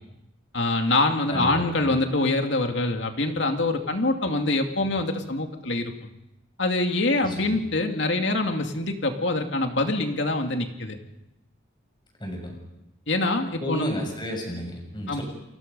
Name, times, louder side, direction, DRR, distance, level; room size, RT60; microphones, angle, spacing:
voice 1, 0.5-6.1 6.6-11.0 13.1-14.0 15.1-15.2, left 2 dB, 65° left, 4 dB, 2.4 m, -25 dB
voice 2, 1.3-1.7 7.2-7.6 12.2-12.6 13.6-15.2, equal, 25° left, 2 dB, 6.9 m, -32 dB
29.5 x 22.0 x 5.5 m, 0.91 s
head